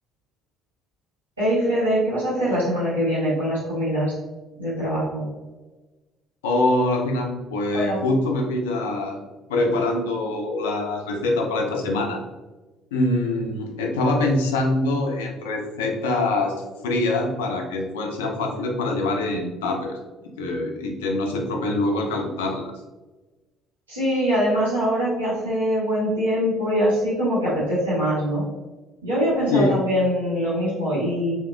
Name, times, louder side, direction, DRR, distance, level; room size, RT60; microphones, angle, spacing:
voice 1, 1.4-4.1 4.6-5.2 7.7-8.0 23.9-28.4 29.0-31.3, equal, 85° right, -12 dB, 1.4 m, -23 dB
voice 2, 6.4-9.2 9.5-12.2 12.9-16.6 16.8-20.0 20.4-22.7 29.5-29.7, left 2 dB, 75° left, 2 dB, 0.5 m, -24 dB
3.4 x 2.8 x 2.3 m, 1.2 s
figure-of-eight pair, 50°, 0 cm